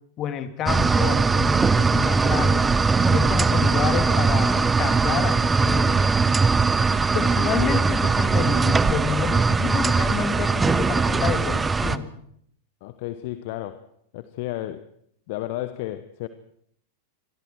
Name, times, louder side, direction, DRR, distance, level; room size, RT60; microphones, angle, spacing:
voice 1, 0.2-2.7 3.0-6.1 7.1-12.1, left 9 dB, 30° left, 9 dB, 2.9 m, -29 dB
sound 1, 0.7-12.0, right 4 dB, 15° right, 0.9 m, -20 dB
voice 2, 12.8-13.9 14.1-14.9 15.3-16.3, left 15 dB, 50° left, 13 dB, 1.2 m, -32 dB
29.0 x 22.5 x 4.7 m, 0.68 s
figure-of-eight pair, 90°, 0 cm